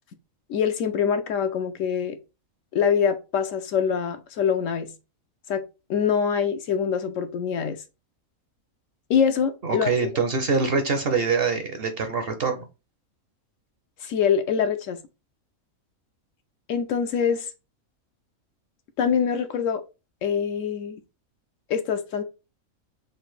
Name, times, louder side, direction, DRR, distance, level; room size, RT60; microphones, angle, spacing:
voice 1, 0.5-2.2 2.7-4.9 5.5-5.6 5.9-7.8 9.1-9.9 14.0-15.0 16.7-17.5 19.0-19.8 20.2-21.0 21.7-22.2, left 7 dB, 70° left, 0.9 m, -24 dB
voice 2, 9.6-12.7, right 4 dB, 55° right, 0.7 m, -24 dB
3.9 x 2.5 x 4.6 m
omnidirectional pair, 1.5 m